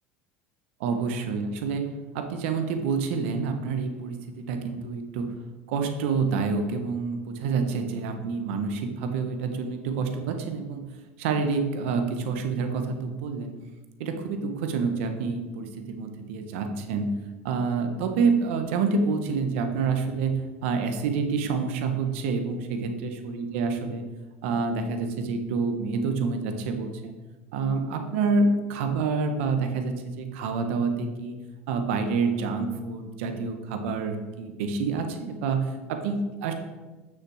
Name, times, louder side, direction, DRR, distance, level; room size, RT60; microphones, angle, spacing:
voice 1, 0.8-1.9 2.1-5.3 5.7-10.8 11.2-13.5 14.0-17.1 17.4-24.0 24.4-27.2 27.5-31.4 31.7-36.5, right 4 dB, 75° right, 6 dB, 1.3 m, -28 dB
8.8 x 6.3 x 5.0 m, 1.2 s
hypercardioid pair, 95°, 7 cm